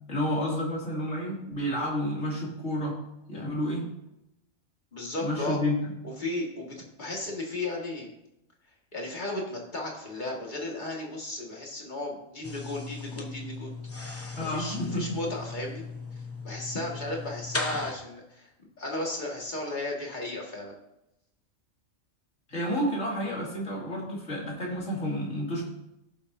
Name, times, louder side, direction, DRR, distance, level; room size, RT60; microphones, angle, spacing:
voice 1, 0.1-3.0 3.3-3.9 5.2-6.0 14.4-15.2 22.5-25.6, equal, 65° left, -4 dB, 3.1 m, -30 dB
voice 2, 4.9-5.6 6.0-8.1 8.9-13.7 14.1-15.8 16.4-18.5 18.8-20.7, left 2 dB, 35° left, -2 dB, 2.1 m, -35 dB
sound 1, 12.4-17.9, left 3 dB, 15° left, 0.8 m, -37 dB
16.0 x 6.9 x 2.8 m, 0.86 s
omnidirectional pair, 1.3 m